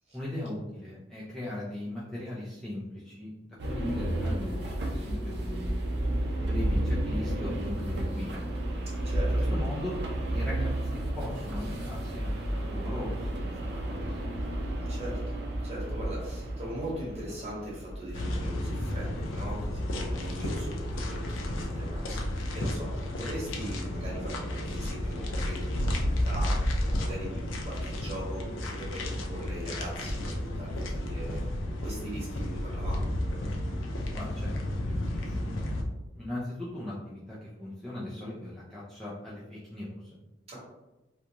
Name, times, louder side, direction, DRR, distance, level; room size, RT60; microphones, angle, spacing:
voice 1, 0.1-5.8 6.4-8.4 9.3-10.0 10.3-14.3 34.1-34.5 34.8-40.1, left 1 dB, ahead, -9 dB, 0.4 m, -39 dB
sound 1, 3.6-18.8, right 1 dB, 55° right, 0.5 m, -32 dB
voice 2, 9.0-9.6 14.5-15.4 15.6-31.5 31.8-33.1 40.5-40.6, right 1 dB, 30° right, -6 dB, 1.0 m, -40 dB
sound 2, 18.1-35.8, left 1 dB, 85° left, 0.5 m, -32 dB
2.4 x 2.2 x 2.8 m, 1.0 s
head